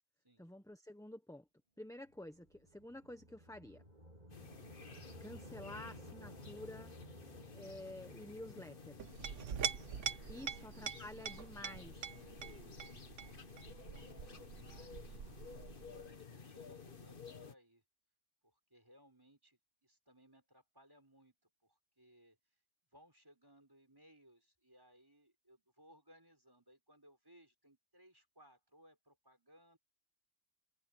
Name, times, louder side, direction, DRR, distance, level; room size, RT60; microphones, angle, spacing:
voice 1, 0.4-1.5 1.8-3.8 5.2-6.9 7.5-9.0 10.3-12.0, left 1 dB, 5° left, 1.3 m, -50 dB
sound 1, 2.0-12.3, right 1 dB, 35° right, 4.3 m, -58 dB
sound 2, 4.3-17.5, left 5 dB, 45° left, 1.5 m, -54 dB
Chink clink, 9.0-16.1, right 7 dB, 80° right, 1.4 m, -44 dB
voice 2, 10.3-15.3 15.9-17.8 18.4-21.3 21.6-22.6 22.9-29.8, equal, 20° right, 6.0 m, -66 dB
omnidirectional pair, 1.2 m